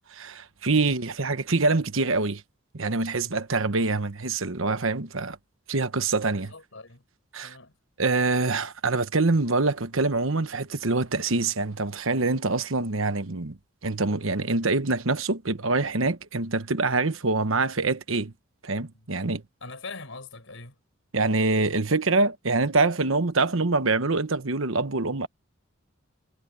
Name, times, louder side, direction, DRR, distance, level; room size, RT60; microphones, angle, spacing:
voice 1, 0.0-2.4 2.7-5.4 5.7-6.5 7.3-7.6 8.0-13.6 13.8-18.3 18.6-19.4 21.1-25.3, right 3 dB, 70° right, 1.2 m, -25 dB
voice 2, 6.5-7.0 7.4-7.7 18.9-19.0 19.6-20.7, left 3 dB, 65° left, 6.0 m, -42 dB
head